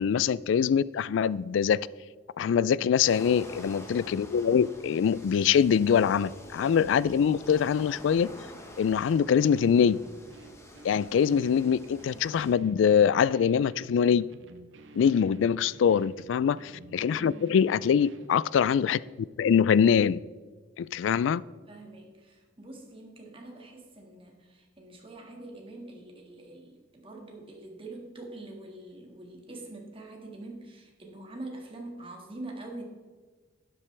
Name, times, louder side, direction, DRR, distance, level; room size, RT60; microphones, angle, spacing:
voice 1, 0.0-1.9 2.4-8.3 8.8-10.0 10.8-14.3 15.0-19.0 19.4-20.2 20.8-21.4, left 7 dB, 85° left, 0.3 m, -24 dB
voice 2, 2.4-2.8 15.2-15.4 17.0-17.4 21.7-32.8, right 2 dB, 30° right, 1.8 m, -44 dB
sound 1, 3.1-12.5, left 1 dB, 15° left, 1.2 m, -47 dB
sound 2, 9.5-18.4, right 2 dB, 80° right, 0.8 m, -52 dB
12.0 x 8.5 x 3.3 m
head